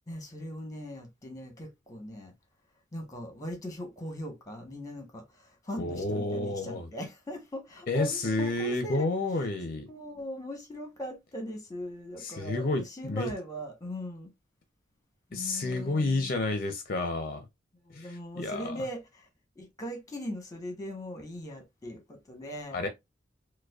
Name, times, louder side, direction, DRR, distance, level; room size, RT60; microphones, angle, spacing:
voice 1, 0.1-2.3 2.9-9.1 9.9-14.3 15.3-16.3 17.8-19.3 19.6-22.8, equal, 20° left, 1.0 m, -40 dB
voice 2, 5.8-6.9 7.9-9.9 12.2-13.3 15.3-17.4 17.9-18.8 22.7-22.9, left 2 dB, 50° left, 0.5 m, -30 dB
4.8 x 2.1 x 2.3 m
head